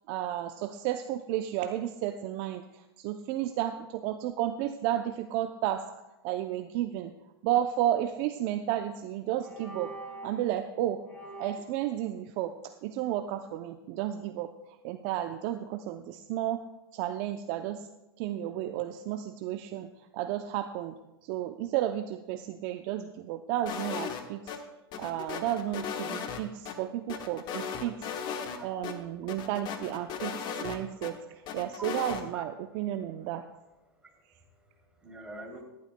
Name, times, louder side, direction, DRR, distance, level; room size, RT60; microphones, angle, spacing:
voice 1, 0.1-5.8 6.2-7.1 7.4-9.9 10.2-11.1 11.4-14.5 14.8-16.6 16.9-17.9 18.2-24.5 25.0-28.0 28.6-33.4, right 12 dB, 45° right, 8 dB, 0.6 m, -32 dB
sound 1, 8.7-9.0 9.4-10.5 11.1-11.8, right 2 dB, 10° left, 2.9 m, -44 dB
sound 2, 23.7-24.6 24.9-26.7 27.1-28.6 28.8-28.9 29.3-31.1 31.5-32.2, left 7 dB, 35° left, 1.1 m, -36 dB
voice 2, 34.0-35.6, right 1 dB, 10° right, -1 dB, 2.9 m, -47 dB
16.0 x 11.5 x 2.2 m, 0.99 s
hypercardioid pair, 120°, 13 cm